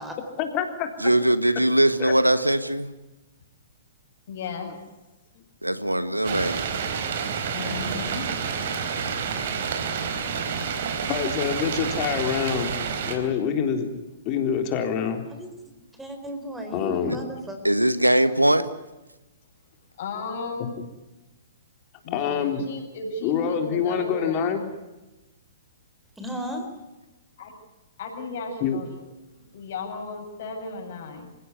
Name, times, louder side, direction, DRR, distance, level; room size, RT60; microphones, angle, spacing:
voice 1, 0.4-1.1 2.0-2.1 9.8-10.4 11.1-12.8 13.1-13.9 14.3-15.2 16.7-17.2 22.1-22.6 23.2-24.6 28.6-28.8, left 7 dB, 30° left, 3.8 m, -26 dB
voice 2, 1.0-2.9 5.6-6.6 17.6-18.6, right 1 dB, 85° right, 1.6 m, -21 dB
voice 3, 4.3-4.7 7.5-8.3 20.0-20.7 22.0-24.5 27.4-27.5 28.0-29.0 29.4-31.3, left 3 dB, 50° left, 7.7 m, -35 dB
sound 1, 6.2-13.2, right 6 dB, 50° right, 4.2 m, -29 dB
voice 4, 16.0-17.6 26.2-26.7, right 1 dB, 5° right, 4.2 m, -34 dB
28.0 x 17.0 x 9.7 m
figure-of-eight pair, 115°, 0 cm